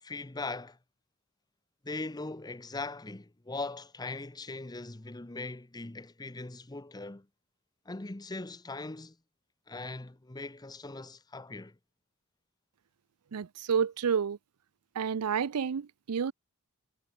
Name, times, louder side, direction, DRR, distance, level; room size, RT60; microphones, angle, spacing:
voice 1, 0.0-0.8 1.8-7.3 7.9-9.2 9.7-11.8, left 3 dB, 20° left, 0.8 m, -40 dB
voice 2, 13.3-14.4 14.9-16.3, right 7 dB, 85° right, 0.5 m, -30 dB
head